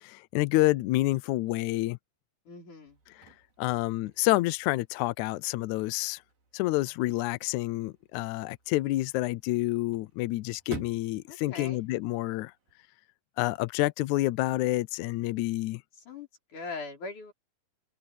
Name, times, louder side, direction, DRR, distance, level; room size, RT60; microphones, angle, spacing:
voice 1, 0.0-2.0 3.2-3.3 3.6-6.2 6.5-12.5 13.4-15.8, left 18 dB, 80° left, 1.7 m, -28 dB
voice 2, 2.5-3.0 11.3-11.9 16.0-17.3, left 3 dB, 60° left, 6.6 m, -41 dB
Chirp tweet / Car / Slam, 2.9-12.9, right 3 dB, 85° right, 6.5 m, -51 dB
omnidirectional pair, 4.0 m